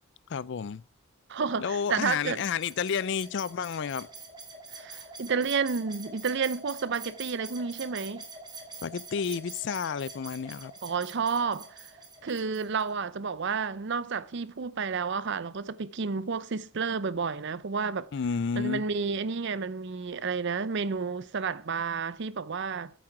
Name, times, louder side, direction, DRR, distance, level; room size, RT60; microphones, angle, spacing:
voice 1, 0.3-0.8 1.6-4.1 8.8-10.7 18.1-18.9, left 6 dB, 50° left, 0.4 m, -31 dB
voice 2, 1.3-2.4 4.7-8.2 10.8-11.9 12.2-18.1 18.6-22.9, right 5 dB, 50° right, 0.5 m, -31 dB
sound 1, 1.8-12.9, right 3 dB, 20° right, 2.1 m, -46 dB
8.9 x 7.7 x 4.8 m
head